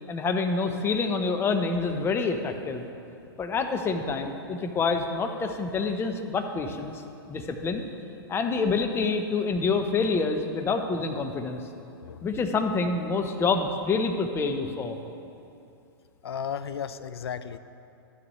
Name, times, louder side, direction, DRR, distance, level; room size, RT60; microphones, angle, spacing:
voice 1, 0.1-2.8 3.4-7.0 7.3-7.8 8.3-11.6 12.2-15.0, left 4 dB, 20° left, 6 dB, 0.7 m, -27 dB
voice 2, 16.2-17.6, left 8 dB, 85° left, 13 dB, 0.5 m, -34 dB
12.5 x 9.7 x 3.1 m, 2.7 s
hypercardioid pair, 125°, 13 cm